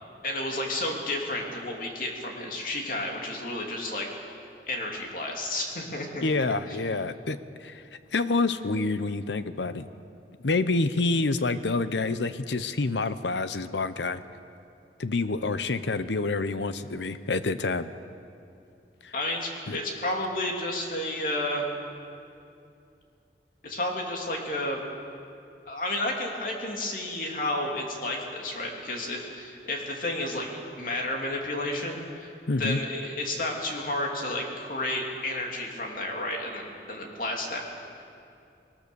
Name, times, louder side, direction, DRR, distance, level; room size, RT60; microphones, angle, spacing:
voice 1, 0.2-4.1 4.7-6.3 6.7-6.8 19.1-21.7 23.6-24.8 25.7-32.3 32.6-37.6, left 1 dB, 50° left, 0 dB, 2.8 m, -31 dB
voice 2, 6.2-7.8 8.1-9.9 10.4-14.2 15.0-17.9 19.0-19.1 19.7-19.8 32.5-32.8, left 3 dB, 85° left, 12 dB, 0.8 m, -27 dB
20.5 x 19.5 x 7.0 m, 2.5 s
head